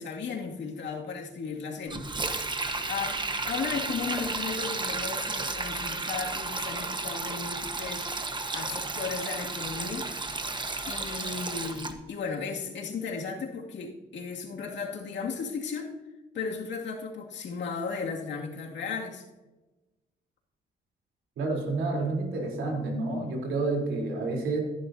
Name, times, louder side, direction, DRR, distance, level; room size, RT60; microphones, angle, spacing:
voice 1, 0.0-2.1 2.9-3.2 3.5-8.1 8.5-10.1 10.9-15.9 16.3-19.2, left 5 dB, 65° left, 0 dB, 2.2 m, -35 dB
Sink (filling or washing), 1.9-11.9, right 3 dB, 25° right, 1.2 m, -33 dB
voice 2, 21.4-24.6, right 3 dB, 80° right, 0 dB, 3.5 m, -29 dB
14.5 x 10.5 x 2.7 m, 1.1 s
cardioid pair, 90°, 20 cm